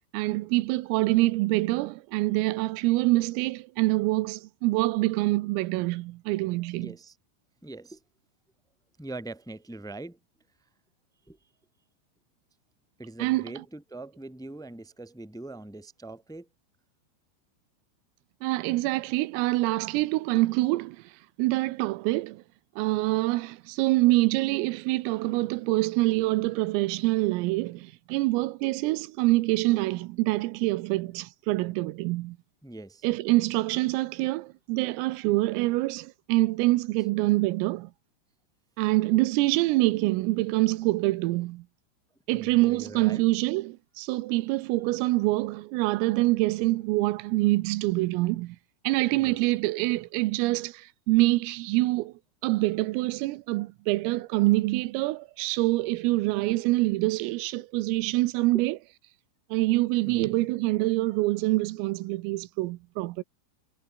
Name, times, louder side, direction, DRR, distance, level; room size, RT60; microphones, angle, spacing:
voice 1, 0.1-7.0 13.2-13.5 18.4-21.0 21.4-22.4 22.8-32.4 33.0-37.9 38.8-41.7 42.3-48.6 48.9-52.1 52.4-58.8 59.5-63.2, right 20 dB, 85° right, 3.5 m, -25 dB
voice 2, 6.7-7.1 7.6-8.0 9.0-10.2 11.3-11.4 13.0-16.5 32.6-33.1 42.3-43.2 49.1-49.4 60.0-60.3, right 2 dB, ahead, 2.4 m, -42 dB
omnidirectional pair, 5.9 m